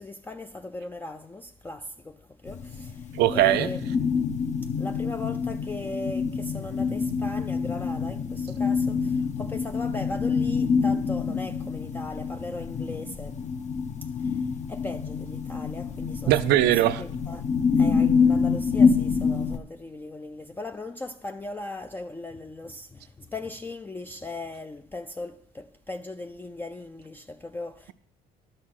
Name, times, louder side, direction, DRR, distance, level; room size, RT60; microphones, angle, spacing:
voice 1, 0.0-4.1 4.6-13.4 14.0-16.3 17.0-17.5 17.8-27.9, left 2 dB, 10° left, 0.4 m, -38 dB
sound 1, 2.5-19.6, left 5 dB, 45° left, 0.8 m, -26 dB
voice 2, 3.1-3.7 16.3-17.0, right 14 dB, 80° right, 0.5 m, -20 dB
11.5 x 6.5 x 5.8 m
cardioid pair, 110°, 17 cm